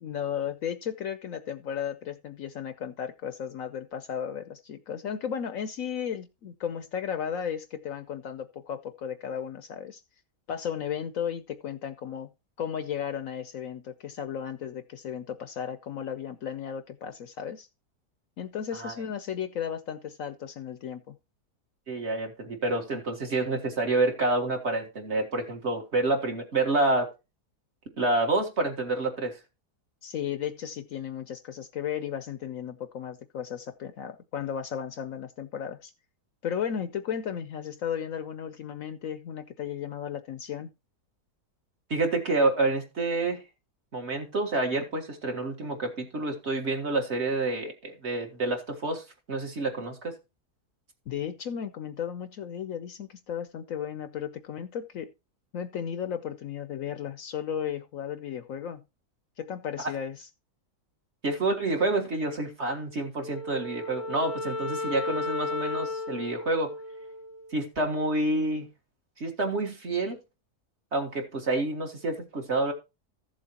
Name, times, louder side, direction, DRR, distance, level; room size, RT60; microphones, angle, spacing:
voice 1, 0.0-10.0 10.5-12.3 12.6-17.7 18.4-21.2 30.0-35.9 36.4-40.7 51.1-55.1 55.5-58.8 59.4-60.3, left 8 dB, 65° left, 1.0 m, -34 dB
voice 2, 21.9-27.1 28.0-29.4 41.9-43.4 43.9-50.1 61.2-66.7 67.5-68.7 69.2-70.2 70.9-72.7, right 2 dB, 45° right, 1.9 m, -28 dB
Wind instrument woodwind instrument, 63.2-67.7, left 2 dB, 25° left, 0.8 m, -34 dB
14.5 x 7.4 x 2.9 m
omnidirectional pair, 1.7 m